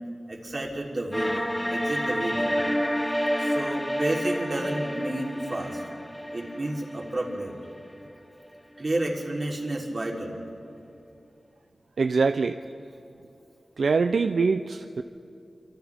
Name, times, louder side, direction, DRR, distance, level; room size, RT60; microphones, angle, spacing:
voice 1, 0.3-2.5 3.4-5.8 6.3-7.5 8.8-10.3, right 1 dB, 40° right, -2 dB, 3.4 m, -31 dB
sound 1, 1.1-8.1, equal, 5° left, 0.8 m, -29 dB
voice 2, 12.0-12.6 13.8-15.0, right 4 dB, 75° right, 7 dB, 0.5 m, -23 dB
29.0 x 26.5 x 3.6 m, 2.6 s
wide cardioid pair, 85°, 0 cm